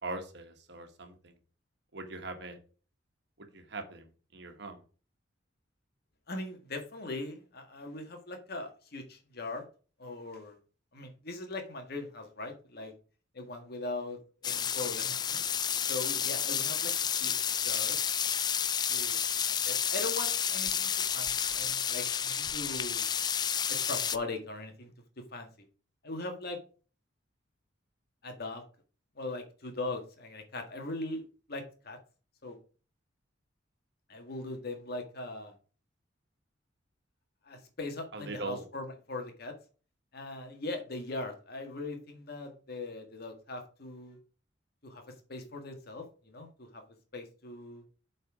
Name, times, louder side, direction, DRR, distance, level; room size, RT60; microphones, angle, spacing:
voice 1, 0.0-1.3 1.9-2.6 3.4-4.8 38.1-38.6, right 2 dB, 65° right, 6 dB, 1.4 m, -41 dB
voice 2, 6.3-9.6 10.0-10.6 10.9-12.9 13.3-15.4 15.9-16.9 17.2-18.0 18.9-23.0 23.7-24.9 25.3-25.5 26.0-26.6 28.2-28.6 29.1-32.0 32.4-32.6 34.1-35.5 37.4-39.5 40.1-44.2 44.8-46.8 47.1-47.8, left 2 dB, 55° left, 4 dB, 1.7 m, -40 dB
sound 1, 14.4-24.2, left 8 dB, 20° left, 0.3 m, -31 dB
7.8 x 4.3 x 4.9 m, 0.38 s
head